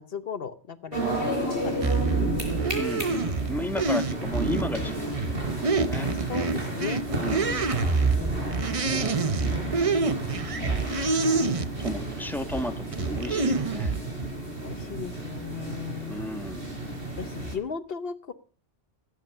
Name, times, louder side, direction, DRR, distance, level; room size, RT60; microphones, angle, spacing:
voice 1, 0.0-2.3 6.3-7.0 8.1-8.7 14.6-16.2 17.2-18.3, left 6 dB, 65° left, 12 dB, 1.1 m, -37 dB
sound 1, 0.9-17.6, right 1 dB, 60° right, 4.9 m, -32 dB
sound 2, 1.8-12.0 12.5-14.0, right 4 dB, 35° right, 0.9 m, -27 dB
voice 2, 2.8-5.1 5.4-6.1 7.1-7.7 11.8-13.9 16.1-16.7, left 1 dB, ahead, 7 dB, 1.5 m, -34 dB
18.0 x 9.3 x 6.7 m, 0.41 s
omnidirectional pair, 1.1 m